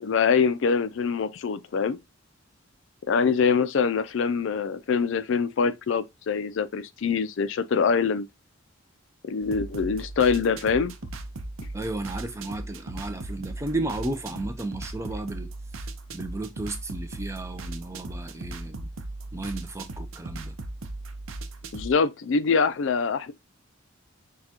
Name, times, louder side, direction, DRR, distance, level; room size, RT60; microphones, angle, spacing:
voice 1, 0.0-2.0 3.1-8.3 9.2-10.9 21.7-23.3, left 5 dB, 65° left, 0.4 m, -24 dB
sound 1, 9.4-21.9, right 2 dB, 80° right, 0.6 m, -38 dB
voice 2, 11.7-15.5 15.8-18.9 19.3-20.6, right 2 dB, 15° right, 0.5 m, -34 dB
6.5 x 2.3 x 2.8 m
head